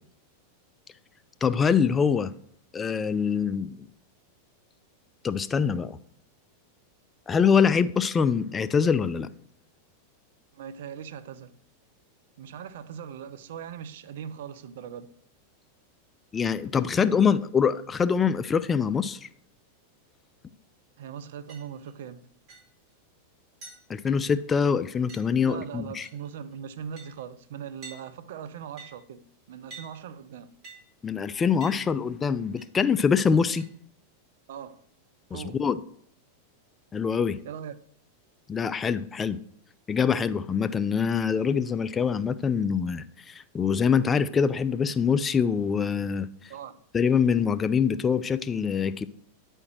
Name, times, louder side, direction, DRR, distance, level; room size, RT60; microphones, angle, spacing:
voice 1, 1.4-2.3 2.7-3.8 5.2-6.0 7.3-9.3 16.3-19.3 23.9-26.1 31.0-33.6 35.3-35.8 36.9-37.4 38.5-39.4 39.9-46.3 46.9-49.1, left 6 dB, 20° left, 0.4 m, -24 dB
voice 2, 10.5-11.6 12.4-15.1 21.0-22.3 25.5-30.5 34.5-34.8 35.3-35.6 37.4-37.8 46.5-46.8, right 8 dB, 55° right, 0.5 m, -40 dB
sound 1, 21.5-21.9 22.5-22.6 22.9-23.0 23.6-23.8 25.1-25.4 26.0-26.3 26.5-26.6 27.0-27.1 27.8-28.0 28.8-28.9 29.7-29.9 30.6-30.8 31.6-31.8 32.6-32.7 33.6-33.7, right 3 dB, 30° right, 4.3 m, -45 dB
9.7 x 4.4 x 6.1 m
figure-of-eight pair, 90°, 0 cm